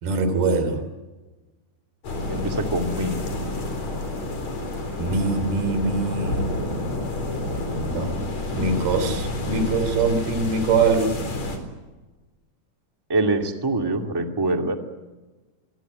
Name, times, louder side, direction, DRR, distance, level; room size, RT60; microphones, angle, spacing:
voice 1, 0.0-0.8 5.0-6.5 7.7-8.1 8.5-11.1, right 4 dB, 65° right, 9 dB, 5.0 m, -23 dB
sound 1, 2.0-11.6, left 2 dB, 40° left, 5.1 m, -29 dB
voice 2, 2.3-3.2 13.1-14.7, right 2 dB, 10° right, 4 dB, 1.0 m, -24 dB
25.0 x 23.0 x 9.4 m, 1.2 s
omnidirectional pair, 4.8 m